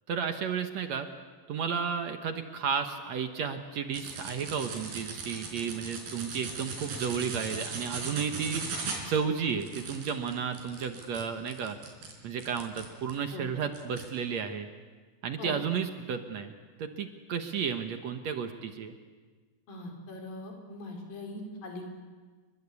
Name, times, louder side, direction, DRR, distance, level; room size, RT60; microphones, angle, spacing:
voice 1, 0.1-1.1 1.5-8.6 9.1-11.8 12.2-14.7 15.2-16.5 16.8-18.9, right 6 dB, 60° right, 7 dB, 2.2 m, -33 dB
sound 1, 3.9-13.2 13.7-14.1, right 4 dB, 85° right, 6.0 m, -38 dB
voice 2, 19.7-21.9, left 2 dB, 80° left, 2 dB, 6.0 m, -41 dB
29.0 x 22.5 x 8.4 m, 1.4 s
omnidirectional pair, 4.0 m